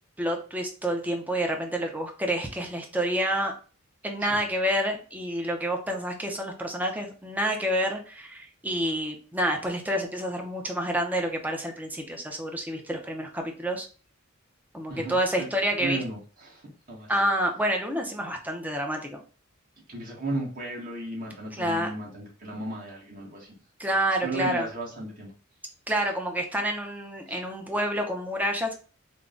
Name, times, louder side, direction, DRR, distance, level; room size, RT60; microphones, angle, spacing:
voice 1, 0.2-3.5 4.0-13.9 14.7-16.0 17.1-19.2 21.6-21.9 23.8-24.7 25.9-28.7, equal, 10° right, 2 dB, 0.7 m, -28 dB
voice 2, 14.9-15.5 15.8-17.1 19.9-23.6 24.2-25.3 27.3-27.4, right 2 dB, 45° right, -3 dB, 1.6 m, -35 dB
3.6 x 2.2 x 3.8 m, 0.37 s
head